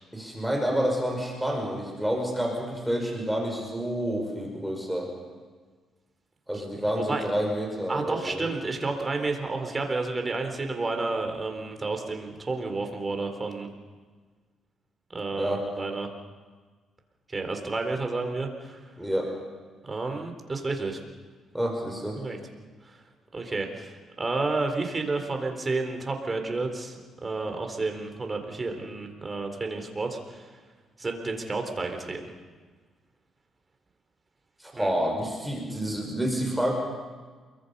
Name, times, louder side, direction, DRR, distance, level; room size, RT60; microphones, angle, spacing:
voice 1, 0.1-5.1 6.5-8.5 15.4-15.6 19.0-19.3 21.5-22.2 34.6-36.7, equal, ahead, 0 dB, 5.5 m, -28 dB
voice 2, 6.9-7.3 7.9-13.7 15.1-16.1 17.3-18.8 19.8-21.0 22.1-22.4 22.8-23.0 23.3-30.5 31.0-32.3 34.7-34.9, right 3 dB, 25° right, 4 dB, 4.0 m, -31 dB
29.0 x 23.0 x 5.6 m, 1.4 s
cardioid pair, 90°, 0 cm